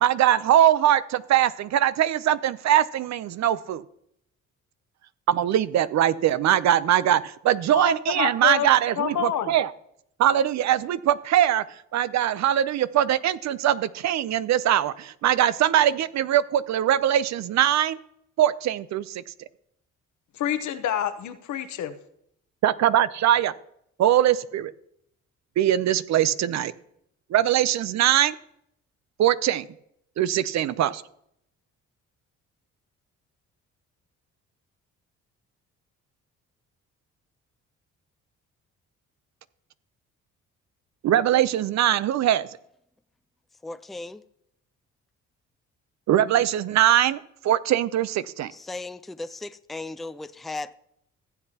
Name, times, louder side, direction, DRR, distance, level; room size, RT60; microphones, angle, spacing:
voice 1, 0.0-3.8 5.3-9.7 10.2-11.6 11.9-18.0 18.4-19.2 22.6-23.5 24.0-24.7 25.6-26.7 27.3-28.4 29.2-29.7 30.2-31.0 41.0-42.5 46.1-48.5, right 11 dB, 65° right, 0.6 m, -22 dB
voice 2, 7.7-8.7 9.0-9.5 20.4-21.9, left 10 dB, 75° left, 1.0 m, -28 dB
voice 3, 43.6-44.2 48.5-50.7, left 2 dB, ahead, 0.3 m, -36 dB
15.0 x 8.0 x 2.8 m
cardioid pair, 90°, 30 cm